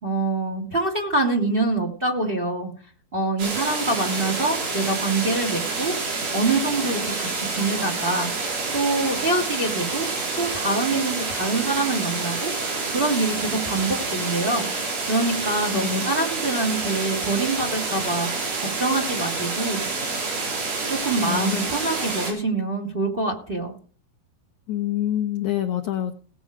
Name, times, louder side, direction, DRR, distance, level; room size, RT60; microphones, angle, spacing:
voice 1, 0.0-2.7 3.1-5.9 6.3-8.3 8.7-10.1 10.4-14.7 15.1-18.3 18.6-19.8 20.9-23.7, right 2 dB, 15° right, 2 dB, 2.3 m, -25 dB
sound 1, 3.4-22.3, right 3 dB, 90° right, 6.6 m, -28 dB
voice 2, 15.7-16.1 21.2-21.7 24.7-26.1, left 12 dB, 70° left, 4 dB, 1.9 m, -26 dB
19.0 x 7.9 x 5.0 m, 0.43 s
omnidirectional pair, 4.2 m